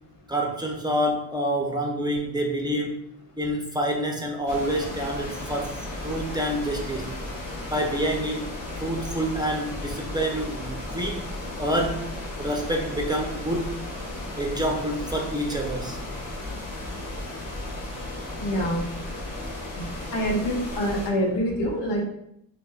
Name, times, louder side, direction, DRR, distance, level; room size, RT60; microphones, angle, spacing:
voice 1, 0.3-3.1 3.4-7.1 7.7-8.5 8.8-11.3 11.6-12.1 12.4-13.8 14.4-16.0, right 1 dB, 10° right, 0 dB, 0.6 m, -27 dB
sound 1, 4.5-21.1, left 2 dB, 50° left, 1.2 m, -35 dB
voice 2, 18.4-18.8 19.8-22.0, equal, 80° left, 0 dB, 1.1 m, -26 dB
5.9 x 2.3 x 2.3 m, 0.72 s
cardioid pair, 75°, 41 cm